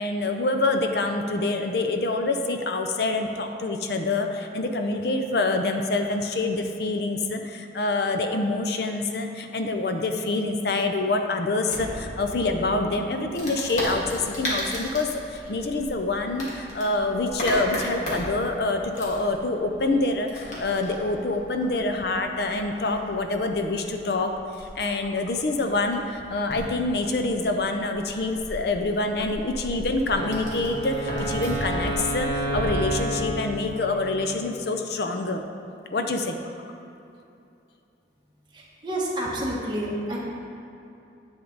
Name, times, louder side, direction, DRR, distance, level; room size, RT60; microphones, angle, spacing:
voice 1, 0.0-24.3 24.6-35.4 35.9-36.4, left 2 dB, 60° left, 5 dB, 0.5 m, -26 dB
sound 1, 11.6-18.0, right 1 dB, 45° right, 1.0 m, -44 dB
Wood, 13.3-32.6, equal, 40° left, 2.0 m, -36 dB
Wind instrument woodwind instrument, 30.0-34.2, right 1 dB, 25° left, 1.5 m, -30 dB
voice 2, 38.5-40.2, right 1 dB, 25° right, -5 dB, 1.5 m, -29 dB
10.5 x 7.2 x 3.9 m, 2.7 s
head